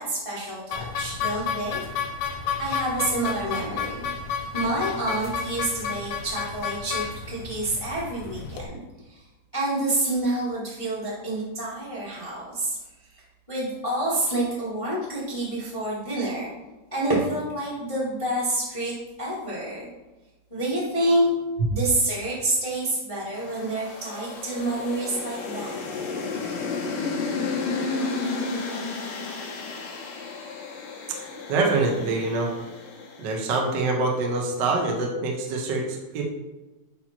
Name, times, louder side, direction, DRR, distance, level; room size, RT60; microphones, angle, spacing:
voice 1, 0.0-1.8 2.6-4.0 4.5-8.8 9.1-9.2 9.5-12.8 13.5-16.5 16.9-18.9 19.2-19.9 20.5-21.3 21.7-26.0, right 1 dB, 45° left, -7 dB, 0.4 m, -28 dB
sound 1, 0.7-8.6, left 6 dB, 70° left, 1.8 m, -31 dB
sound 2, 23.3-33.7, left 4 dB, 90° left, 2.6 m, -32 dB
voice 2, 31.5-32.5 33.2-36.2, right 3 dB, 85° right, 1 dB, 0.9 m, -25 dB
8.9 x 3.0 x 4.3 m, 1.1 s
omnidirectional pair, 3.6 m